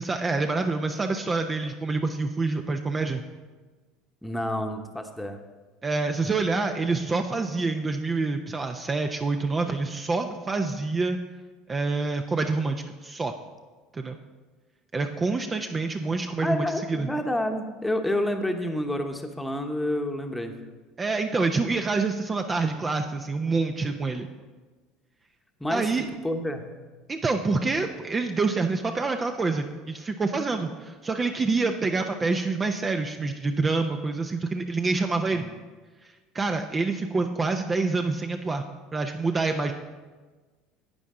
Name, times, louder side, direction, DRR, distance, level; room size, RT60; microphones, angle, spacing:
voice 1, 0.0-3.2 5.8-11.2 11.7-13.3 13.9-14.2 14.9-17.1 21.0-24.3 25.7-26.0 27.1-35.4 36.3-38.6 38.9-39.7, right 3 dB, 25° right, 5 dB, 0.6 m, -27 dB
voice 2, 4.2-5.4 16.4-20.5 25.6-25.9 26.2-26.7 35.3-35.5, left 1 dB, 5° left, 5 dB, 1.1 m, -29 dB
11.5 x 8.4 x 3.8 m, 1.3 s
hypercardioid pair, 85°, 0 cm